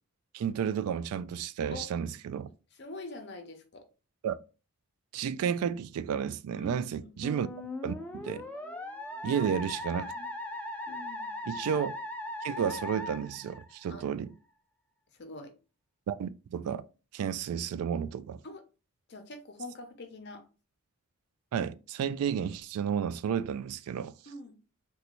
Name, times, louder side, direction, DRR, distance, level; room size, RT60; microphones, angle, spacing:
voice 1, 0.3-2.5 4.2-4.3 5.1-7.5 7.8-7.9 8.2-8.4 9.2-10.1 11.5-12.0 12.4-14.3 16.1-16.8 17.1-18.4 21.5-24.1, right 8 dB, 90° right, 0.3 m, -32 dB
voice 2, 2.7-3.8 6.6-7.2 9.2-9.5 10.0-10.3 10.9-11.6 13.9-14.1 15.1-15.5 18.4-18.6 19.1-20.4 24.3-24.6, left 2 dB, 50° left, 0.6 m, -45 dB
Musical instrument, 7.2-14.1, left 1 dB, 5° left, 0.3 m, -39 dB
3.9 x 2.2 x 2.9 m
head